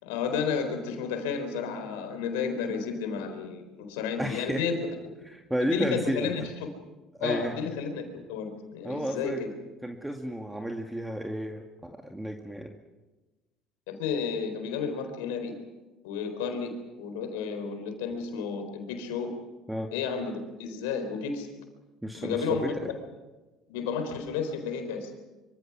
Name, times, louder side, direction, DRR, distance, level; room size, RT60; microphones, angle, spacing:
voice 1, 0.0-4.9 5.6-6.7 7.2-9.5 13.9-15.6 16.0-19.3 19.9-21.5 22.1-22.9 23.7-25.1, left 6 dB, 75° left, 7 dB, 4.1 m, -32 dB
voice 2, 4.2-4.6 5.2-6.5 7.2-7.6 8.8-9.4 9.8-12.8 19.7-19.9 22.0-22.9, equal, 5° right, 3 dB, 2.3 m, -32 dB
25.5 x 25.5 x 6.0 m, 1.2 s
hypercardioid pair, 65°, 0 cm